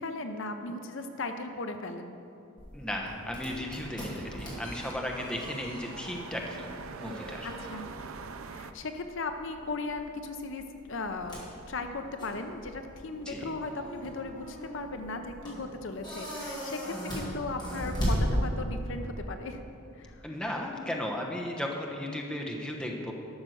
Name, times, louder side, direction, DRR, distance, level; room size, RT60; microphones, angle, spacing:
voice 1, 0.0-2.2 7.4-7.9 8.5-11.4 11.7-19.6 19.9-20.1, left 3 dB, 65° left, 7 dB, 0.7 m, -37 dB
sound 1, 2.6-19.0, equal, 20° left, 2.7 m, -37 dB
voice 2, 2.7-6.7 7.0-7.5 13.3-13.5 20.2-23.1, left 1 dB, 5° left, 0 dB, 1.0 m, -35 dB
sound 2, 2.9-8.7, right 4 dB, 85° right, 0.5 m, -45 dB
12.0 x 6.5 x 6.4 m, 2.6 s
head